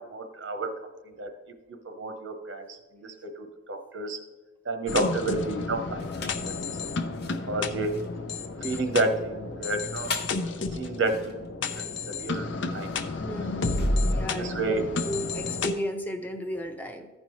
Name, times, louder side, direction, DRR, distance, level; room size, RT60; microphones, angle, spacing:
voice 1, 0.1-0.7 1.2-1.3 1.8-4.2 4.6-6.1 6.4-6.8 7.5-7.9 8.6-10.1 10.7-12.5 12.7-12.9 14.2-14.8, right 2 dB, 85° right, 6 dB, 1.0 m, -30 dB
sound 1, 4.9-15.7, left 3 dB, 75° left, 0.6 m, -31 dB
sound 2, 6.0-6.5 7.0-14.9, left 4 dB, 55° left, 1.0 m, -42 dB
voice 2, 13.2-14.8 15.0-17.1, equal, 10° left, 4 dB, 0.6 m, -34 dB
14.5 x 5.2 x 3.1 m, 1.2 s
head